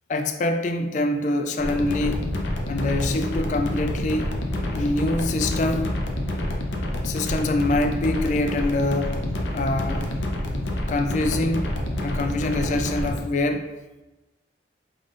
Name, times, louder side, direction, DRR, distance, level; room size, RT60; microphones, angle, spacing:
voice 1, 0.1-2.3 2.7-4.4 4.7-5.9 7.0-9.2 9.5-10.1 10.9-11.7 12.0-13.7, left 2 dB, 40° left, 6 dB, 0.3 m, -25 dB
sound 1, 1.6-13.2, left 1 dB, 75° left, 0.7 m, -28 dB
5.1 x 3.9 x 2.5 m, 1.1 s
head